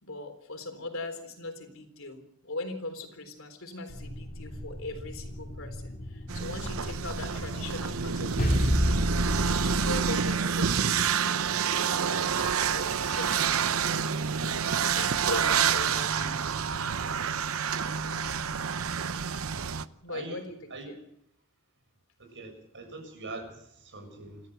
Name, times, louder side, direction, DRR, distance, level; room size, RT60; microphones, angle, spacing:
voice 1, 0.0-8.7 9.4-11.6 11.9-13.7 14.9-16.4 20.0-21.0, left 2 dB, 65° left, 7 dB, 3.9 m, -40 dB
sound 1, 3.9-10.4, equal, 45° left, 3.1 m, -31 dB
sound 2, 6.3-19.9, right 7 dB, 75° right, 0.8 m, -28 dB
voice 2, 20.1-20.9 22.2-24.4, right 3 dB, 60° right, 5 dB, 7.3 m, -43 dB
28.0 x 13.0 x 8.0 m, 0.75 s
head